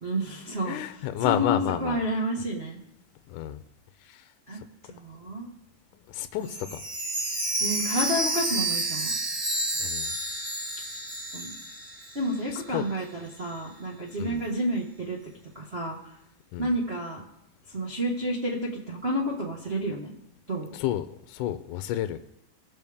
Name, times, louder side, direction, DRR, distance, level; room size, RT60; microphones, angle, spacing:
voice 1, 0.0-2.8 4.5-4.6 4.9-5.5 6.3-6.6 7.6-9.1 11.3-11.5 12.1-15.2 15.5-16.1 16.6-17.2 17.7-20.1 20.5-20.7, equal, 80° right, -5 dB, 0.5 m, -30 dB
voice 2, 0.7-2.0 3.3-3.6 4.0-4.3 6.1-6.8 9.8-10.1 12.5-12.8 14.2-14.4 16.5-16.7 20.7-22.2, left 12 dB, 80° left, 10 dB, 1.9 m, -30 dB
Chime, 6.4-12.4 12.7-12.8 13.4-13.5, right 1 dB, 30° right, 3.0 m, -30 dB
19.5 x 6.9 x 3.5 m, 0.81 s
omnidirectional pair, 4.0 m